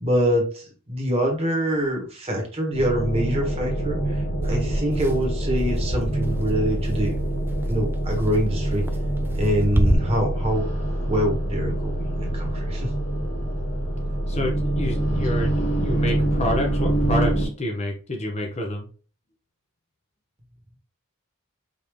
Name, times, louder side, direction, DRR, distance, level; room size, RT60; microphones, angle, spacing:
voice 1, 0.0-7.2 7.7-8.8 9.4-10.7 11.1-12.9, equal, 30° right, 0 dB, 1.3 m, -25 dB
sound 1, 2.7-17.5, right 1 dB, 60° left, 2.0 m, -25 dB
sound 2, 4.4-9.9, right 1 dB, 10° right, 0.3 m, -28 dB
voice 2, 14.3-18.9, left 1 dB, 30° left, 1 dB, 0.7 m, -28 dB
5.2 x 2.7 x 3.1 m, 0.38 s
head